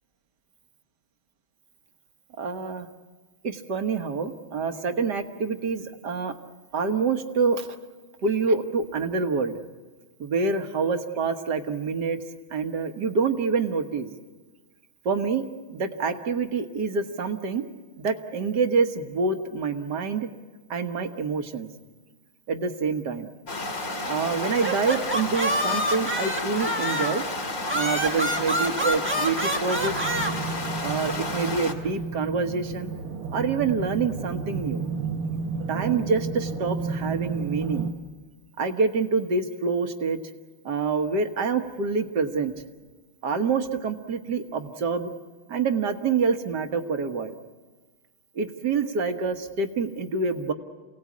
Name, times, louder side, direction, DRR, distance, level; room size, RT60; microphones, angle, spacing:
voice 1, 2.4-2.9 3.4-6.3 6.7-7.7 8.2-9.6 10.2-12.2 12.5-14.1 15.1-17.7 18.0-20.3 20.7-21.7 22.5-23.3 24.1-27.2 27.7-30.0 30.8-32.9 33.3-34.8 35.7-37.9 38.6-40.2 40.7-42.5 43.2-45.1 45.5-47.3 48.4-50.5, right 4 dB, 55° right, 7 dB, 1.8 m, -26 dB
sound 1, 23.5-31.7, left 2 dB, 40° left, 2.7 m, -32 dB
sound 2, 24.4-27.2 27.7-30.3, equal, 5° right, 1.2 m, -27 dB
sound 3, 29.7-37.9, right 5 dB, 85° right, 2.1 m, -32 dB
28.5 x 18.0 x 8.5 m, 1.3 s
omnidirectional pair, 2.3 m